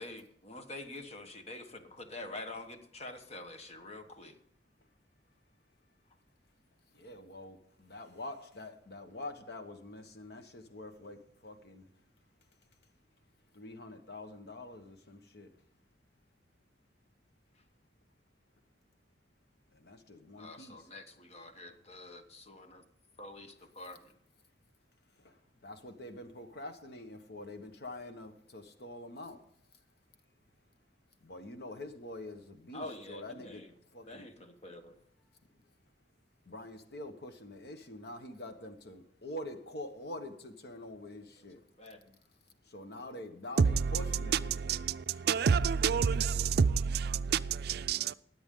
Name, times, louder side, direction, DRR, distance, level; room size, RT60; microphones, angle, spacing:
voice 1, 0.0-4.4 20.4-22.8 23.2-24.1 32.7-33.7 34.1-35.0 41.8-42.2, left 2 dB, 40° left, 1.2 m, -46 dB
voice 2, 6.9-12.0 13.5-15.5 19.7-20.9 21.6-21.8 25.1-29.4 29.7-29.8 31.2-33.6 33.9-34.3 35.5-35.6 36.4-41.6 42.6-44.5, left 1 dB, 65° left, 1.2 m, -46 dB
voice 3, 43.6-48.1, right 6 dB, 60° right, 0.4 m, -29 dB
20.5 x 8.0 x 3.8 m
head